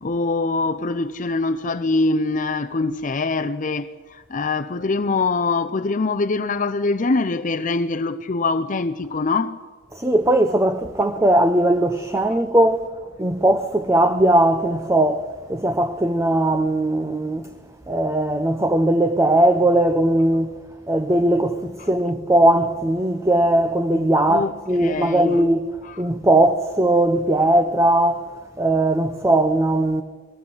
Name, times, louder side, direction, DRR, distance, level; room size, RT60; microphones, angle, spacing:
voice 1, 0.0-9.6 24.3-25.4 25.9-26.0, left 3 dB, 40° left, 0.6 m, -23 dB
voice 2, 9.9-12.8 13.2-17.5 17.9-20.5 20.9-25.7 26.0-28.3 28.6-30.0, right 1 dB, 15° right, 0.8 m, -19 dB
20.5 x 15.5 x 9.8 m
head